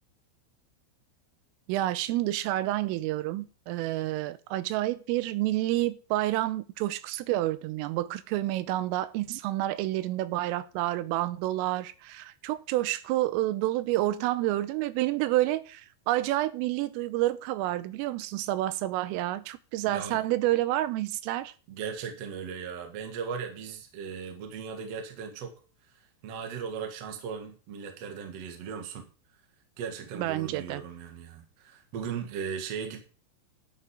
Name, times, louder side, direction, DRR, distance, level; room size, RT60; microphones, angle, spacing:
voice 1, 1.7-21.5 30.2-30.8, right 16 dB, 85° right, 3.3 m, -29 dB
voice 2, 19.9-20.2 21.7-25.5 26.2-29.1 29.8-33.0, right 6 dB, 65° right, 1.5 m, -37 dB
11.0 x 7.3 x 4.8 m
omnidirectional pair, 5.8 m